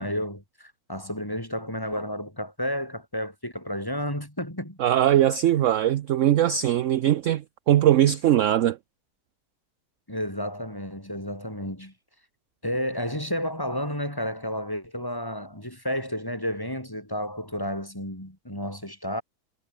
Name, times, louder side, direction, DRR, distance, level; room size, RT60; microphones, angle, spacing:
voice 1, 0.0-4.8 10.1-11.9 12.6-19.2, equal, 15° left, 6.3 m, -31 dB
voice 2, 4.8-8.8, right 12 dB, 65° right, 0.9 m, -21 dB
omnidirectional pair, 1.6 m